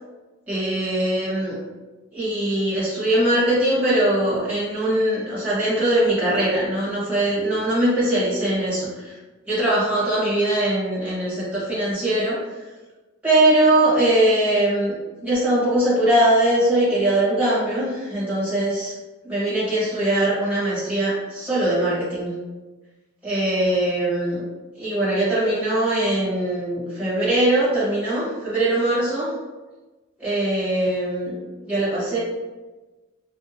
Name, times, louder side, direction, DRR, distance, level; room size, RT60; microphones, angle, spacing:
voice 1, 0.5-1.6 2.1-9.2 9.5-12.4 13.2-14.9 15.2-18.9 19.2-22.3 23.2-24.4 24.8-29.3 30.2-31.4 31.7-32.2, right 1 dB, 5° right, -10 dB, 1.2 m, -21 dB
2.7 x 2.1 x 2.7 m, 1.2 s
head